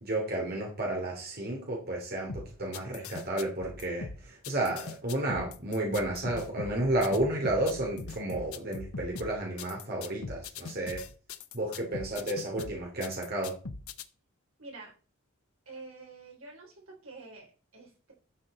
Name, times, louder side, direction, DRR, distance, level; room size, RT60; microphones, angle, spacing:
voice 1, 0.0-11.0 11.5-13.6, right 1 dB, 45° right, -1 dB, 3.3 m, -32 dB
sound 1, 2.3-14.0, left 4 dB, 85° left, 0.9 m, -42 dB
voice 2, 14.6-14.9 15.7-18.1, right 3 dB, 70° right, -1 dB, 4.2 m, -48 dB
12.5 x 6.8 x 4.3 m, 0.37 s
head